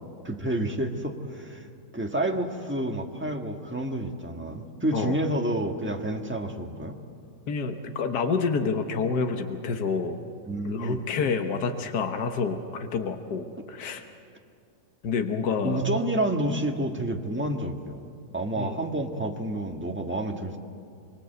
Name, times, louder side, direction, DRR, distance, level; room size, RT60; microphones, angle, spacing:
voice 1, 0.2-1.7 1.9-7.0 10.5-11.0 15.6-20.6, right 1 dB, 5° right, 2 dB, 1.4 m, -29 dB
voice 2, 7.5-10.2 10.6-14.0 15.0-15.8 18.6-18.8, left 5 dB, 75° left, 5 dB, 1.7 m, -28 dB
26.0 x 24.0 x 8.0 m, 2.3 s
omnidirectional pair, 1.8 m